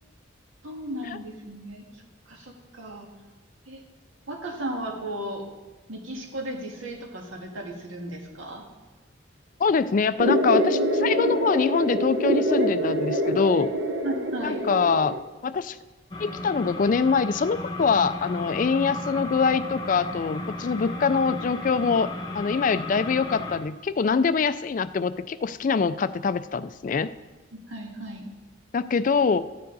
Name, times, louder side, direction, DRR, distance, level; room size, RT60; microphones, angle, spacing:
voice 1, 0.6-3.1 3.7-3.8 4.3-5.4 5.9-8.6 14.0-14.6 27.5-28.2, right 1 dB, 80° right, 1 dB, 2.0 m, -35 dB
voice 2, 9.6-13.7 14.4-15.2 15.4-15.8 16.2-22.1 22.3-27.1 28.7-29.5, left 5 dB, 40° left, 14 dB, 0.3 m, -24 dB
sound 1, 10.2-15.2, right 1 dB, 60° right, 0.9 m, -25 dB
sound 2, 16.1-23.6, left 2 dB, 20° left, 1.0 m, -34 dB
13.5 x 9.3 x 4.0 m, 1.2 s
head